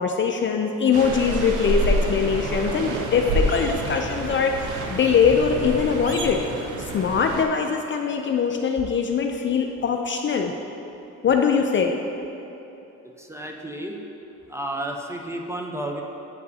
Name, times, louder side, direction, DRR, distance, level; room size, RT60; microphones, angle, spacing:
voice 1, 0.0-6.4 6.8-10.5 11.2-11.9, left 6 dB, 40° left, 3 dB, 0.4 m, -22 dB
sound 1, 0.9-7.4, right 1 dB, 85° right, 0.7 m, -27 dB
voice 2, 13.0-14.0 14.5-16.0, right 1 dB, 10° right, 1 dB, 0.6 m, -32 dB
9.4 x 5.3 x 2.7 m, 2.9 s
cardioid pair, 90°, 30 cm